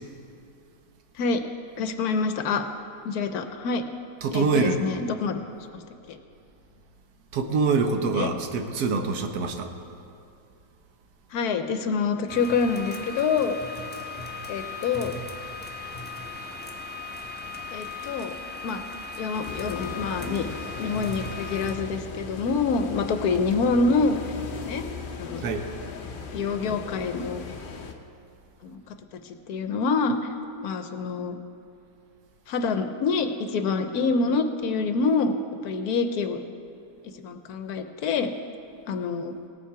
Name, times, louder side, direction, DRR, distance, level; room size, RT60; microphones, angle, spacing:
voice 1, 1.8-2.6 3.0-3.8 4.3-5.4 6.1-6.2 8.2-8.3 11.3-13.6 14.5-15.2 17.7-18.4 18.6-18.8 19.2-20.5 20.8-24.2 24.6-24.8 25.2-25.4 26.3-27.4 28.6-29.0 29.2-30.2 30.6-31.4 32.5-35.3 35.6-36.4 37.2-38.3 38.9-39.4, left 4 dB, 75° left, 8 dB, 1.1 m, -26 dB
voice 2, 4.2-4.8 7.3-9.7 16.4-16.8 25.4-25.7, right 4 dB, 70° right, 6 dB, 1.3 m, -25 dB
sound 1, 12.3-21.7, left 3 dB, 10° left, 0.5 m, -37 dB
sound 2, 19.4-27.9, left 5 dB, 50° left, 0.6 m, -38 dB
18.5 x 7.2 x 4.8 m, 2.5 s
omnidirectional pair, 1.7 m